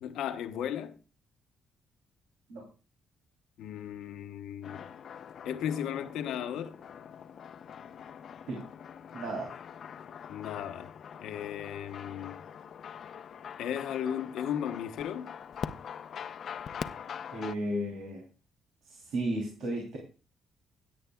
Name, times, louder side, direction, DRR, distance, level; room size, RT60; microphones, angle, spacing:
voice 1, 0.0-1.0 3.6-4.9 5.4-6.8 10.3-10.9 11.2-12.4 13.6-15.3, left 9 dB, 85° left, 1.0 m, -35 dB
sound 1, 4.6-17.6, left 8 dB, 60° left, 0.6 m, -43 dB
voice 2, 9.1-9.5 17.3-18.2 18.9-20.0, right 1 dB, 85° right, 2.9 m, -34 dB
17.0 x 8.8 x 2.3 m
cardioid pair, 90°, 0 cm